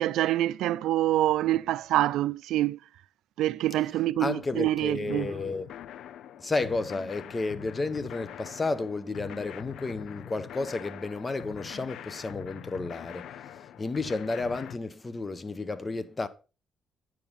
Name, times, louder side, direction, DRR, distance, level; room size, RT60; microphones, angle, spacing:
voice 1, 0.0-2.8 3.4-5.3, right 14 dB, 85° right, 0.3 m, -26 dB
voice 2, 4.2-5.7 6.4-16.3, left 3 dB, 25° left, 0.9 m, -32 dB
sound 1, 5.1-14.8, left 11 dB, 75° left, 0.4 m, -44 dB
9.4 x 7.1 x 4.2 m
cardioid pair, 90°, 0 cm